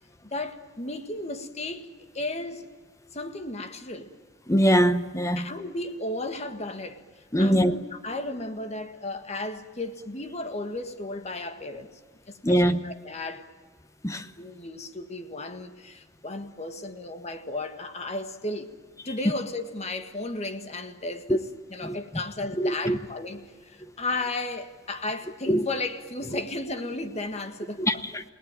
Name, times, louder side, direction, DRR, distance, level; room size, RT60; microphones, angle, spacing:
voice 1, 0.2-1.9 2.1-2.7 3.1-4.1 5.4-7.0 7.4-11.9 12.3-13.5 14.4-18.7 19.1-27.9, left 2 dB, 35° left, 1.7 m, -34 dB
voice 2, 4.5-5.5 7.3-7.8 12.4-12.8 14.0-14.3 21.3-21.4 21.8-22.0 22.6-23.0 25.5-25.7 26.3-26.4 27.8-28.2, equal, 15° left, 0.9 m, -22 dB
29.5 x 18.5 x 9.1 m
head